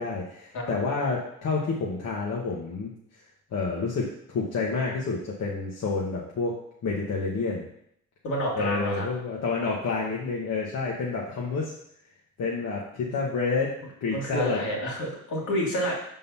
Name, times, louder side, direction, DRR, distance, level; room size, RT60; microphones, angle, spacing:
voice 1, 0.0-2.9 3.5-6.5 6.8-7.7 8.5-11.7 12.4-13.7 14.0-14.6, left 4 dB, 60° left, -3 dB, 1.2 m, -29 dB
voice 2, 8.2-9.1 13.0-13.1 14.1-15.9, equal, 80° left, -3 dB, 2.3 m, -29 dB
5.7 x 3.9 x 5.5 m, 0.73 s
cardioid pair, 90°, 30 cm